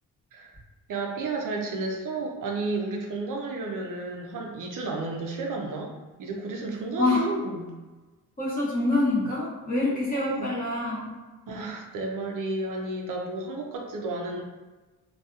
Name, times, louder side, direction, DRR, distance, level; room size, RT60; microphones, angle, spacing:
voice 1, 0.9-5.9 6.2-7.7 9.9-10.5 11.5-14.4, right 2 dB, 65° right, 1 dB, 0.5 m, -32 dB
voice 2, 8.4-11.1, left 2 dB, 25° left, -7 dB, 0.9 m, -26 dB
2.7 x 2.3 x 2.3 m, 1.2 s
cardioid pair, 120°, 34 cm